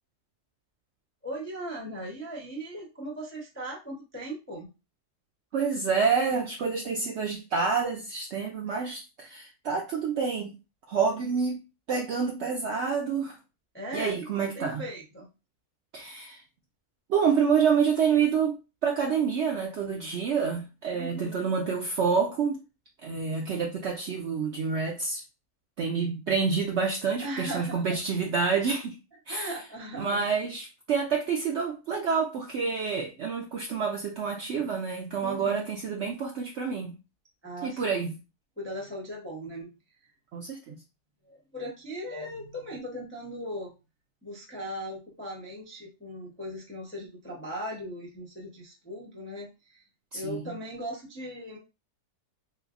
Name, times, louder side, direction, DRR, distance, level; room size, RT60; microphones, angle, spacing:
voice 1, 1.2-4.7 13.7-15.3 20.9-21.5 27.2-28.0 29.3-30.2 35.2-35.7 37.4-37.8 38.6-39.7 41.3-43.7 44.2-49.8 50.1-51.6, equal, 15° left, 0.4 m, -38 dB
voice 2, 5.5-10.5 10.9-11.6 11.9-13.4 13.9-14.8 15.9-16.4 17.1-18.5 18.8-22.6 23.0-25.2 25.8-29.0 29.3-29.5 30.0-36.9 37.6-38.2 40.3-40.8 50.1-50.5, right 6 dB, 70° right, 0.6 m, -28 dB
3.2 x 3.1 x 2.4 m
omnidirectional pair, 1.6 m